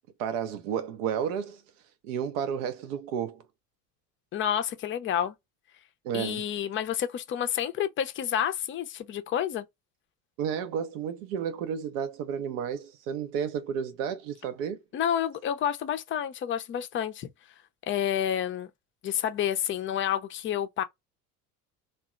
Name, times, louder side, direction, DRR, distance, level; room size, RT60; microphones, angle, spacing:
voice 1, 0.2-1.6 2.0-3.4 6.0-6.4 10.4-14.8, right 8 dB, 55° right, 0.5 m, -32 dB
voice 2, 4.3-5.3 6.1-9.7 14.9-17.3 17.9-18.7 19.0-20.8, left 9 dB, 25° left, 0.5 m, -29 dB
2.7 x 2.1 x 2.3 m
figure-of-eight pair, 65°, 47 cm